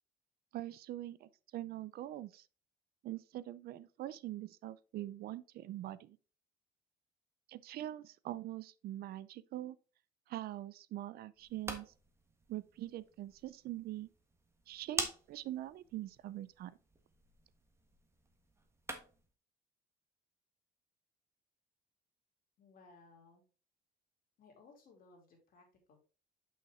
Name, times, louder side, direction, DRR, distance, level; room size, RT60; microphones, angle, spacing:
voice 1, 0.5-2.5 3.0-6.2 7.5-9.8 10.3-11.9 12.5-14.1 14.7-16.7, right 14 dB, 65° right, 0.5 m, -43 dB
sound 1, 11.3-19.3, right 2 dB, 15° right, 1.4 m, -46 dB
voice 2, 22.6-23.4 24.4-26.1, left 3 dB, 55° left, 3.0 m, -61 dB
6.4 x 5.6 x 3.6 m
cardioid pair, 110°, 17 cm